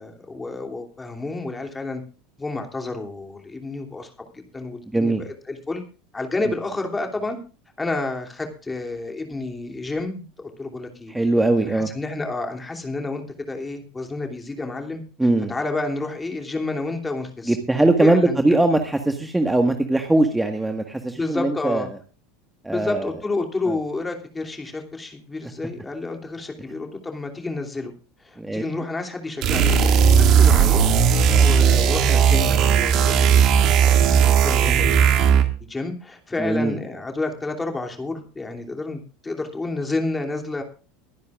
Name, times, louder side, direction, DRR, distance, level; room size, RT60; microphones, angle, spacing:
voice 1, 0.0-2.0 2.4-5.8 6.1-7.4 7.8-11.1 11.7-15.0 15.5-17.6 18.0-18.6 21.1-21.9 22.7-27.9 28.2-30.9 31.1-40.6, left 3 dB, 15° left, 3 dB, 3.0 m, -30 dB
voice 2, 4.9-5.2 11.1-11.9 15.2-15.5 17.5-21.8 22.6-23.1 23.7-23.8 26.6-26.7 28.4-28.6 31.3-31.5 36.4-36.8, right 2 dB, 10° right, 5 dB, 1.7 m, -21 dB
sound 1, 29.4-35.6, right 7 dB, 50° right, 2.1 m, -16 dB
24.5 x 10.5 x 2.5 m, 0.36 s
figure-of-eight pair, 80°, 0 cm